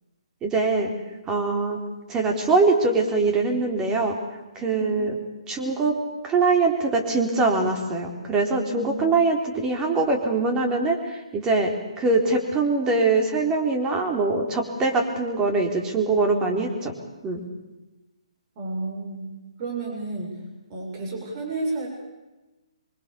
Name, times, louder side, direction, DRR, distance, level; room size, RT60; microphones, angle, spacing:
voice 1, 0.4-0.9 1.3-1.8 2.1-4.2 4.5-5.1 5.5-6.0 6.2-11.7 12.0-16.9 17.2-17.4, right 3 dB, 15° right, 3 dB, 4.2 m, -23 dB
voice 2, 4.7-5.2 8.6-9.1 18.6-20.4 20.7-21.9, right 3 dB, 35° right, 1 dB, 7.3 m, -32 dB
25.5 x 24.0 x 7.1 m, 1.1 s
hypercardioid pair, 145°, 4 cm